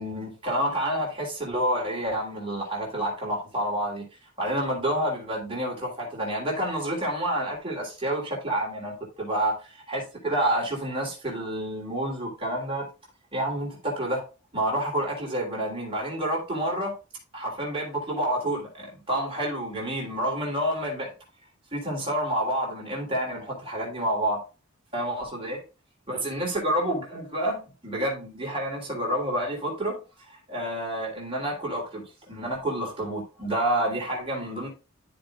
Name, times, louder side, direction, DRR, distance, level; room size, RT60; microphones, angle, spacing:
voice 1, 0.0-4.1 4.4-12.9 13.3-14.3 14.5-16.9 17.3-21.1 21.7-24.4 24.9-25.6 26.1-30.0 30.3-34.7, right 1 dB, 25° right, 3.3 m, -29 dB
13.0 x 5.1 x 2.4 m
head